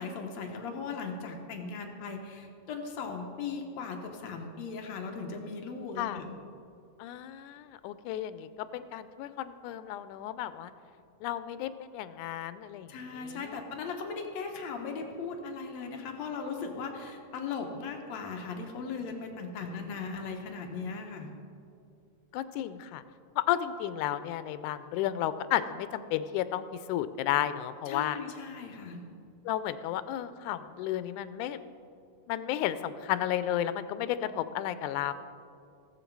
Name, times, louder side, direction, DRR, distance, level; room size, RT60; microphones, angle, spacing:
voice 1, 0.0-6.3 12.9-21.3 27.9-29.0, left 4 dB, 70° left, 3 dB, 2.1 m, -38 dB
voice 2, 7.0-10.7 11.2-13.6 19.6-20.1 22.3-23.0 23.4-28.2 29.5-31.6 32.3-35.1, left 12 dB, 90° left, 13 dB, 2.0 m, -33 dB
19.5 x 7.2 x 4.6 m, 2.5 s
omnidirectional pair, 3.4 m